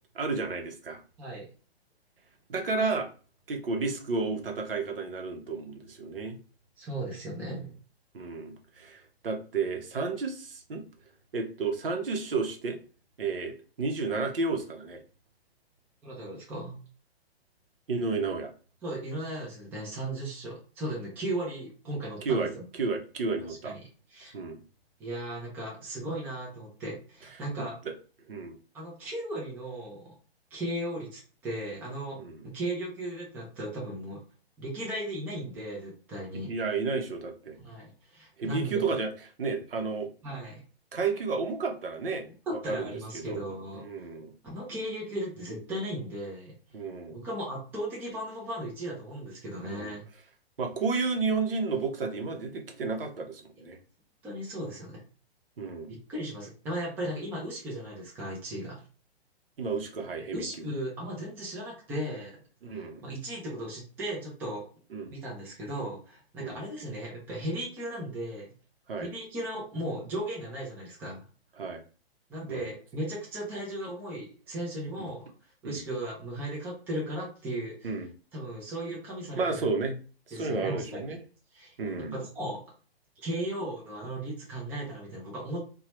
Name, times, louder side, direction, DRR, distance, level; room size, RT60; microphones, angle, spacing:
voice 1, 0.1-1.0 2.5-3.1 3.5-6.4 8.1-10.8 11.3-12.8 13.2-15.0 17.9-18.5 22.2-23.8 24.3-24.6 27.6-27.9 28.3-28.6 32.2-32.4 36.5-37.6 38.4-39.1 39.4-40.1 40.9-42.9 43.1-43.4 43.7-44.3 46.7-47.2 49.6-49.9 50.6-53.8 55.6-55.9 59.6-60.6 62.6-63.0 64.9-65.1 66.4-66.6 68.9-69.1 71.6-71.8 72.5-72.7 75.0-75.1 75.6-75.8 77.8-78.1 79.4-80.0 80.3-81.2 81.8-82.1, right 4 dB, 60° right, 3 dB, 0.8 m, -32 dB
voice 2, 6.8-7.7 16.0-16.8 18.8-22.6 23.5-23.8 24.1-24.3 25.0-27.8 28.7-30.1 30.5-32.2 32.4-34.2 34.6-36.5 37.5-38.9 40.2-40.6 42.5-43.8 44.4-46.5 47.1-50.0 54.2-55.0 56.1-58.8 60.3-62.4 62.7-64.6 65.1-68.5 69.0-71.3 72.3-75.3 75.6-77.9 78.3-79.7 80.3-81.0 81.5-82.6 83.2-85.6, right 1 dB, 5° right, -4 dB, 0.5 m, -36 dB
2.8 x 2.3 x 2.9 m, 0.38 s
figure-of-eight pair, 120°, 31 cm